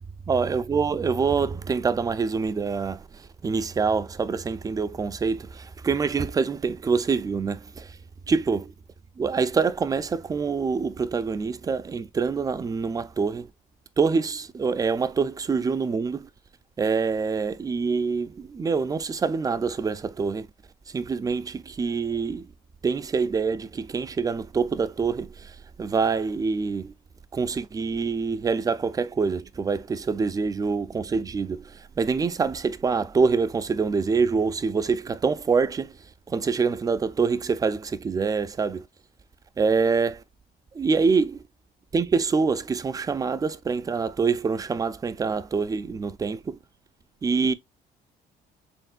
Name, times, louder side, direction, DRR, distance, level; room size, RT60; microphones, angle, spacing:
voice 1, 0.3-7.9 8.3-8.7 9.2-13.5 14.0-16.3 16.8-20.5 20.9-22.5 22.8-26.9 27.3-35.9 36.3-38.8 39.6-40.2 40.7-41.4 41.9-46.6 47.2-47.5, right 5 dB, 20° right, 0.4 m, -25 dB
4.4 x 3.5 x 2.3 m
cardioid pair, 110°, 17 cm